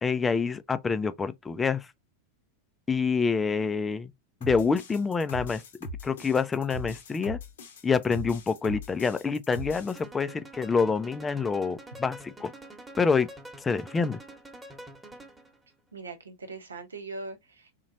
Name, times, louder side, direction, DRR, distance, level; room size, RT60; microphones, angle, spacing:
voice 1, 0.0-1.9 2.9-4.1 4.4-5.6 6.0-7.4 7.8-12.5 13.0-13.3 13.6-14.2, left 5 dB, 15° left, 0.5 m, -27 dB
sound 1, 4.4-10.0, left 1 dB, 60° left, 0.9 m, -40 dB
sound 2, 10.0-15.6, right 1 dB, 10° right, 1.2 m, -46 dB
voice 2, 15.9-17.7, right 3 dB, 75° right, 0.9 m, -40 dB
4.0 x 2.9 x 2.6 m
figure-of-eight pair, 90°, 0 cm